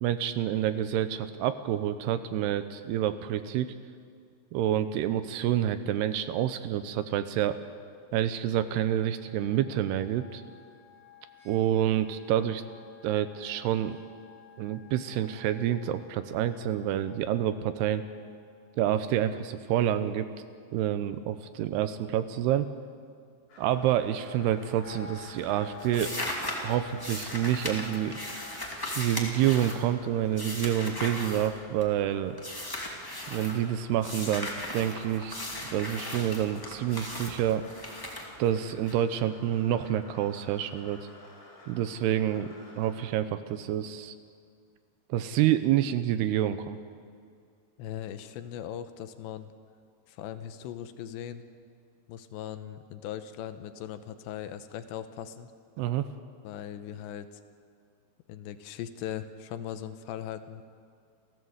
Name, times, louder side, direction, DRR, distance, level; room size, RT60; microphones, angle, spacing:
voice 1, 0.0-3.7 4.5-7.6 8.1-10.4 11.5-12.6 13.0-14.0 14.6-18.0 18.8-20.3 20.7-22.7 23.6-26.3 26.6-28.2 29.0-32.4 33.3-35.3 35.7-37.7 38.4-41.0 41.7-44.1 45.1-46.8 55.8-56.1, right 11 dB, 80° right, 11 dB, 2.5 m, -28 dB
sound 1, 8.7-18.6 24.0-28.4, left 6 dB, 35° right, 7.8 m, -53 dB
Exprimidor Braun, 23.5-43.1, left 2 dB, 55° left, 6.7 m, -52 dB
sound 2, 24.6-25.0 25.2-32.0 32.4-33.6 34.0-38.9, left 1 dB, 15° left, 0.8 m, -37 dB
voice 2, 47.8-49.5 50.1-51.4 52.1-55.5 56.4-57.4 58.3-60.6, left 10 dB, 80° left, 10 dB, 3.0 m, -39 dB
29.0 x 15.0 x 8.0 m, 2.2 s
omnidirectional pair, 5.2 m